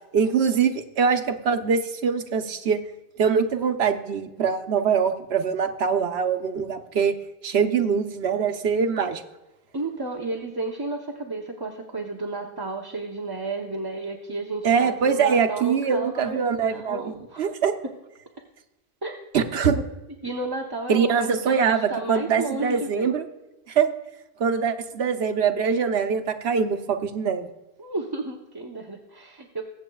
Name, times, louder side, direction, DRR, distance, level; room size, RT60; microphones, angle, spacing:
voice 1, 0.1-2.8 3.2-7.1 7.4-9.2 14.6-17.7 19.3-19.8 20.9-23.3 23.7-23.9 24.4-27.5, right 6 dB, 80° right, 7 dB, 1.1 m, -23 dB
voice 2, 9.7-17.5 19.0-19.2 20.2-23.1 27.8-29.6, right 2 dB, 25° right, 0 dB, 0.7 m, -32 dB
21.5 x 7.8 x 2.3 m, 1.1 s
omnidirectional pair, 1.1 m